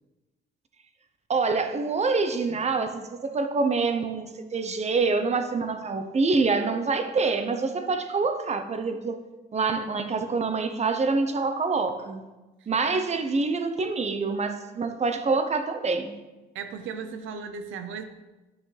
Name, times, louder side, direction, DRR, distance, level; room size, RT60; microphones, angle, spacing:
voice 1, 1.3-9.2 9.5-12.2 12.7-16.2, right 4 dB, 35° right, 8 dB, 0.8 m, -26 dB
voice 2, 16.5-18.0, right 6 dB, 80° right, 9 dB, 0.8 m, -36 dB
10.5 x 6.1 x 3.3 m, 1.1 s
cardioid pair, 90°, 20 cm